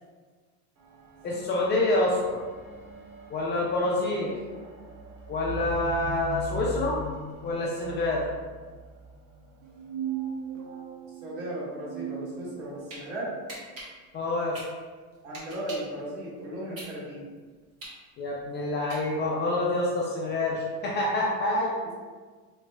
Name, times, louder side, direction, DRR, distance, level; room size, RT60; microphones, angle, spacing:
sound 1, 0.8-10.3 11.1-11.2, left 1 dB, 90° right, 0.9 m, -41 dB
voice 1, 1.2-2.4 3.3-4.3 5.3-7.0 7.4-8.2 14.1-14.6 18.2-21.7, left 2 dB, 30° left, -3 dB, 0.3 m, -27 dB
sound 2, 9.6-13.0, right 9 dB, 55° right, 0.6 m, -37 dB
voice 2, 11.2-13.4 15.2-17.3 21.8-21.9, right 1 dB, 75° right, -6 dB, 1.5 m, -36 dB
sound 3, 12.6-13.0 13.5-16.0 16.4-19.4, right 1 dB, 35° right, 1.0 m, -43 dB
3.9 x 3.0 x 2.2 m, 1.4 s
cardioid pair, 145°, 40 cm